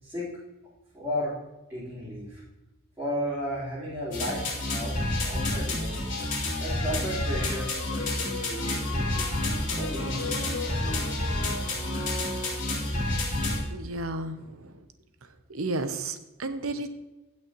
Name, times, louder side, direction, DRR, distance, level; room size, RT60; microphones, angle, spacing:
voice 1, 0.0-0.3 0.9-1.3 1.7-2.4 3.0-5.9 6.6-9.3 9.8-10.6, equal, 10° right, -12 dB, 3.8 m, -34 dB
sound 1, 4.1-13.6, left 1 dB, 40° left, 3.8 m, -29 dB
sound 2, 5.9-13.1, left 3 dB, 85° left, 1.7 m, -38 dB
voice 2, 13.7-14.8 15.5-16.9, right 2 dB, 80° right, 9 dB, 0.9 m, -33 dB
16.5 x 6.4 x 3.0 m, 1.0 s
head